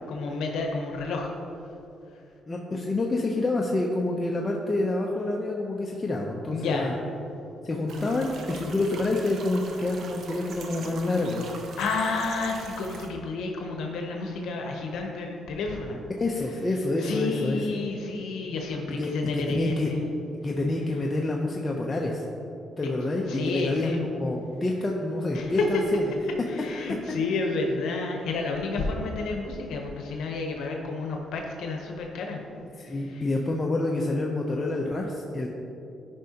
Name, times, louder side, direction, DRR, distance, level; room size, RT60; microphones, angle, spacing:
voice 1, 0.1-1.3 6.5-6.9 11.8-16.0 17.0-20.1 23.3-24.0 25.3-25.8 26.5-32.4 32.9-33.2, left 3 dB, 80° left, 2 dB, 0.8 m, -30 dB
voice 2, 2.5-6.9 7.6-11.5 16.2-17.7 19.0-19.9 20.4-22.2 22.8-26.1 32.8-35.5, left 2 dB, 25° left, -1 dB, 0.6 m, -27 dB
sound 1, 7.9-13.1, right 3 dB, 70° right, 0.8 m, -42 dB
10.0 x 5.2 x 2.8 m, 2.7 s
cardioid pair, 90°, 0 cm